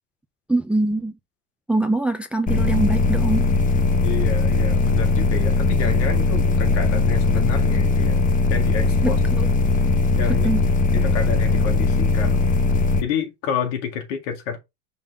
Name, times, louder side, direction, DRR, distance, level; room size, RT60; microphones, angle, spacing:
voice 1, 0.5-1.2 1.7-3.5 9.0-9.5 10.3-10.6, right 2 dB, 5° right, 0.4 m, -23 dB
sound 1, 2.5-13.0, left 3 dB, 20° left, 0.9 m, -19 dB
voice 2, 4.0-8.2 8.5-9.2 10.2-10.5 10.9-12.4 13.0-14.6, left 7 dB, 75° left, 2.1 m, -28 dB
5.4 x 5.3 x 3.4 m
supercardioid pair, 115°, 37 cm